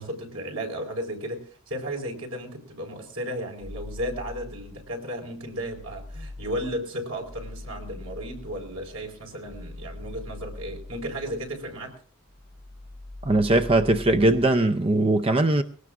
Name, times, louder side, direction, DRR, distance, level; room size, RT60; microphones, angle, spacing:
voice 1, 0.0-11.9, equal, 90° right, 4.2 m, -34 dB
sound 1, 3.6-5.0 5.4-12.0 12.3-14.6, left 2 dB, 5° left, 3.5 m, -42 dB
voice 2, 13.3-15.6, right 2 dB, 25° right, 0.5 m, -20 dB
22.0 x 18.0 x 2.5 m
head